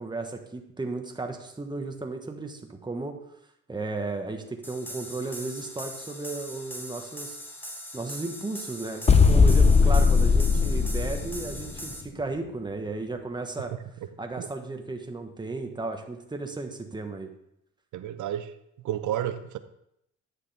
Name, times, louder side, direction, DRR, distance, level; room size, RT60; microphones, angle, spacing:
voice 1, 0.0-3.1 3.7-7.4 7.9-13.7 14.2-17.3, right 3 dB, 15° right, 1.2 m, -34 dB
sound 1, 4.6-12.0, equal, 5° left, 1.2 m, -41 dB
sound 2, 9.1-11.8, left 4 dB, 20° left, 0.5 m, -19 dB
voice 2, 17.9-18.5 18.8-19.6, right 11 dB, 75° right, 0.7 m, -31 dB
9.8 x 6.6 x 3.4 m
cardioid pair, 90°, 30 cm